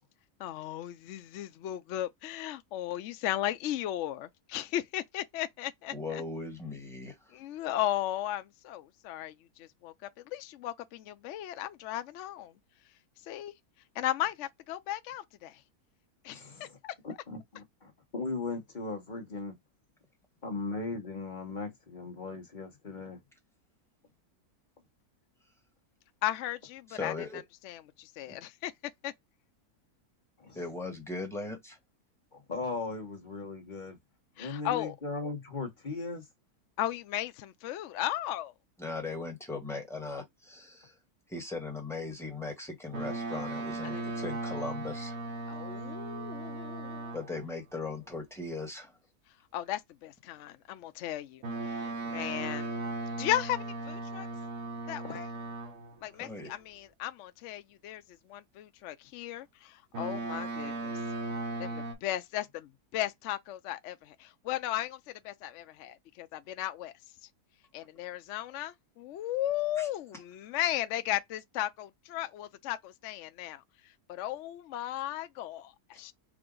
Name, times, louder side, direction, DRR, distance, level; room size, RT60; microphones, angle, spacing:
voice 1, 0.4-6.2 7.3-9.9 10.3-12.5 13.3-13.5 14.0-15.6 16.2-16.9 26.2-27.1 27.6-28.7 29.0-29.1 34.4-34.9 36.8-38.5 43.8-44.1 45.5-47.1 49.5-52.7 53.1-54.3 54.9-55.3 56.0-58.0 58.3-60.9 61.6-66.9 67.7-73.6 74.1-76.1, left 13 dB, 65° left, 0.7 m, -36 dB
voice 2, 5.9-7.4 26.9-27.4 28.3-28.4 30.5-31.8 38.8-41.0 41.3-45.2 47.1-49.0 56.2-56.5 69.8-69.9, left 3 dB, ahead, 1.5 m, -39 dB
voice 3, 16.3-16.8 17.0-19.5 20.4-23.2 30.4-30.6 32.3-34.0 34.4-36.2, left 3 dB, 30° left, 1.3 m, -38 dB
Boat Water vehicle, 42.9-47.5 51.4-56.0 59.9-61.9, right 2 dB, 60° right, 1.7 m, -37 dB
4.9 x 2.6 x 3.8 m
omnidirectional pair, 1.6 m